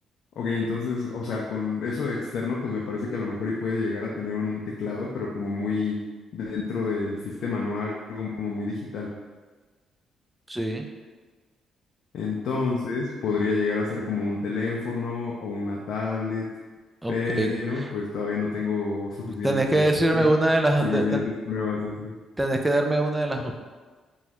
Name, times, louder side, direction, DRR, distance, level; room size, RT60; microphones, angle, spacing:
voice 1, 0.4-6.0 6.3-9.1 12.1-16.5 17.1-19.8 20.1-21.2 21.5-22.1, left 4 dB, 70° left, -3 dB, 0.4 m, -29 dB
voice 2, 10.5-10.9 17.0-17.8 19.2-21.2 22.4-23.5, right 1 dB, 10° right, 3 dB, 0.3 m, -23 dB
3.0 x 2.3 x 2.8 m, 1.4 s
cardioid pair, 90°, 0 cm